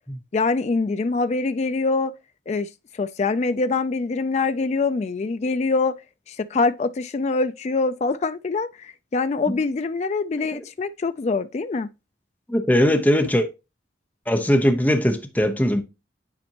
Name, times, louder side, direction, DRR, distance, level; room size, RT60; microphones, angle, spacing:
voice 1, 0.3-2.1 2.5-2.7 2.9-5.9 6.3-11.9, left 3 dB, 35° left, 0.3 m, -24 dB
voice 2, 12.5-13.5 14.3-15.8, equal, 10° left, 0.9 m, -20 dB
9.7 x 4.3 x 2.9 m
head